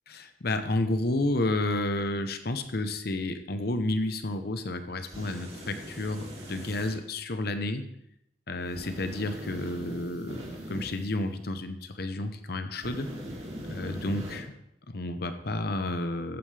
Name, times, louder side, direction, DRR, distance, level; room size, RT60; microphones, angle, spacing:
voice 1, 0.1-7.9 8.5-13.1 13.7-14.5 14.9-16.4, left 2 dB, 55° left, 8 dB, 0.9 m, -31 dB
sound 1, 5.0-6.9 8.7-11.0 12.8-14.4, equal, 35° right, 3.0 m, -41 dB
14.0 x 9.2 x 3.4 m, 0.76 s
head